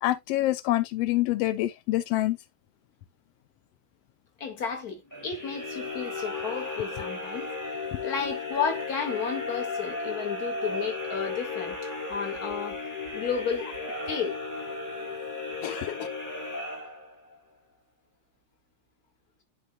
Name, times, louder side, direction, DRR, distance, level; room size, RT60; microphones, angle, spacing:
voice 1, 0.0-2.4 15.6-16.1, left 15 dB, 90° left, 1.3 m, -26 dB
voice 2, 4.4-7.5 7.7-11.8 12.1-12.8 13.1-13.7 14.1-14.4, left 6 dB, 35° left, 2.0 m, -32 dB
sound 1, 5.1-17.4, left 3 dB, 5° left, 1.6 m, -35 dB
10.5 x 4.8 x 2.3 m
omnidirectional pair, 3.4 m